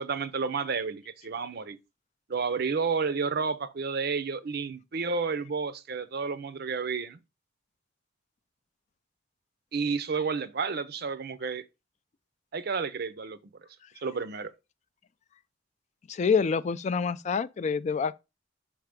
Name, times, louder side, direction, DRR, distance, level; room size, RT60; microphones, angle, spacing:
voice 1, 0.0-1.8 2.3-7.2 9.7-11.6 12.5-13.4 14.0-14.5, right 5 dB, 55° right, 0.6 m, -31 dB
voice 2, 16.1-18.1, left 5 dB, 40° left, 0.3 m, -27 dB
5.7 x 3.4 x 5.1 m
head